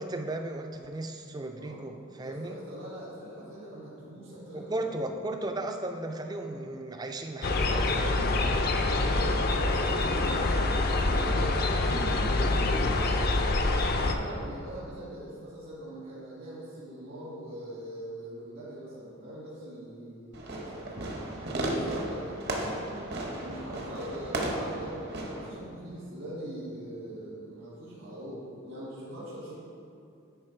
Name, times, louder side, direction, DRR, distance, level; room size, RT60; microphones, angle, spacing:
voice 1, 0.0-2.6 4.5-7.8, right 2 dB, 20° right, 5 dB, 0.4 m, -35 dB
voice 2, 2.2-4.7 7.6-10.2 10.7-12.9 13.9-21.1 21.4-23.1 23.4-29.6, right 1 dB, 70° right, -8 dB, 1.8 m, -41 dB
sound 1, 7.4-14.1, left 2 dB, 45° left, 0.5 m, -26 dB
Fireworks, 20.3-25.5, right 1 dB, 50° right, 0.9 m, -34 dB
10.0 x 4.3 x 4.5 m, 2.5 s
head